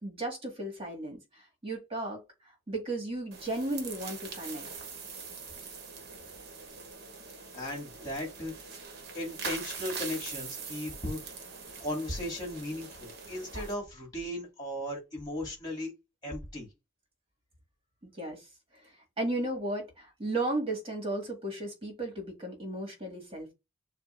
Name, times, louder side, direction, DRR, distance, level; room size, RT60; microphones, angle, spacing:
voice 1, 0.0-4.7 18.2-18.4 19.2-23.5, right 2 dB, 30° right, 1.9 m, -35 dB
sound 1, 3.3-13.7, right 5 dB, 55° right, 1.1 m, -43 dB
voice 2, 7.5-8.5 9.1-11.5 11.8-15.9 16.2-16.7, left 1 dB, 20° left, 2.3 m, -36 dB
6.7 x 2.6 x 2.5 m
head